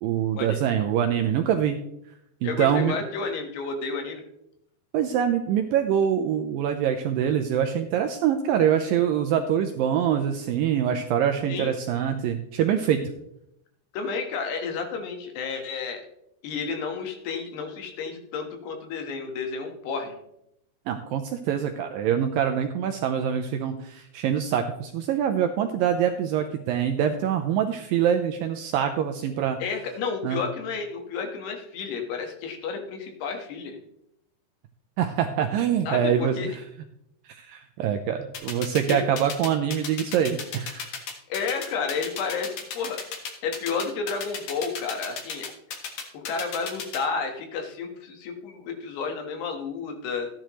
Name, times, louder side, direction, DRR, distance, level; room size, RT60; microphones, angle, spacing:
voice 1, 0.0-1.8 2.4-3.0 4.9-13.1 20.9-29.6 30.2-30.4 35.0-36.6 37.3-40.9, right 9 dB, 90° right, 5 dB, 2.0 m, -24 dB
voice 2, 2.4-4.2 11.5-11.7 13.9-16.0 16.4-20.2 29.6-33.8 35.9-36.5 38.9-39.0 41.3-43.0 43.4-45.5 46.1-50.3, left 5 dB, 80° left, 4 dB, 3.6 m, -31 dB
sound 1, 38.3-47.0, left 6 dB, 60° left, 2.4 m, -34 dB
14.0 x 10.0 x 3.1 m, 0.78 s
omnidirectional pair, 4.7 m